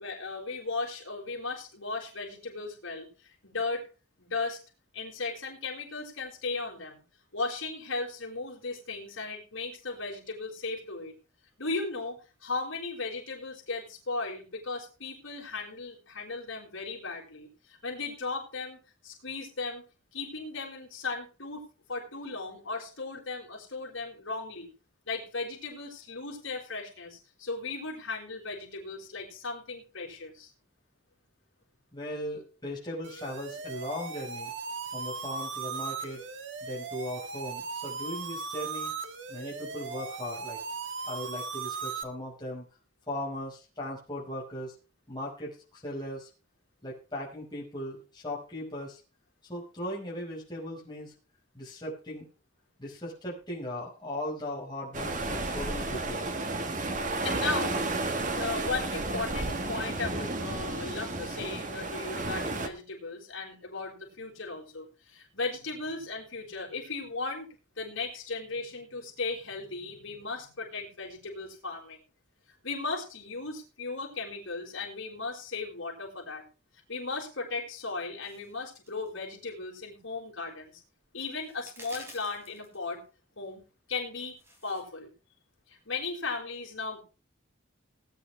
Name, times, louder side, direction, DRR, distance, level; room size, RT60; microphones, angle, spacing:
voice 1, 0.0-3.1 3.4-3.8 4.2-4.6 4.9-7.0 7.3-11.1 11.6-17.5 17.8-19.9 20.1-21.6 21.9-24.7 25.1-30.5 57.2-72.0 72.6-76.4 76.9-80.7 81.1-83.0 83.4-83.6 83.9-84.4 84.6-85.1 85.7-87.0, left 3 dB, 70° left, -1 dB, 5.1 m, -36 dB
voice 2, 31.9-34.5 34.9-36.2 36.6-38.9 39.3-40.6 41.0-42.6 43.1-44.7 45.1-46.3 46.8-49.0 49.5-51.1 51.5-52.3 52.8-56.3, left 1 dB, 20° left, -4 dB, 5.3 m, -38 dB
sound 1, 33.0-42.0, right 4 dB, 60° right, 1.5 m, -38 dB
sound 2, 54.9-62.7, right 2 dB, 35° right, 1.5 m, -32 dB
sound 3, 78.2-79.2 79.4-79.5 79.9-80.0 81.1-81.2 81.4-82.8 83.9-84.8, equal, 10° right, 3.9 m, -50 dB
19.5 x 9.9 x 3.4 m, 0.33 s
head